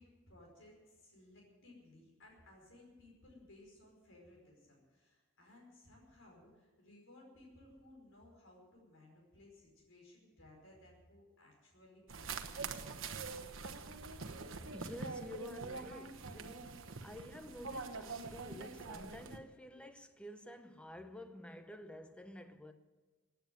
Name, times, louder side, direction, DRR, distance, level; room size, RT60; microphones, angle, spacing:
voice 1, 0.0-12.9, left 1 dB, 60° left, 5.2 m, -60 dB
sound 1, 12.1-19.4, right 4 dB, 65° right, 1.1 m, -45 dB
voice 2, 14.2-22.7, left 1 dB, 5° left, 0.8 m, -51 dB
16.5 x 9.1 x 9.3 m
head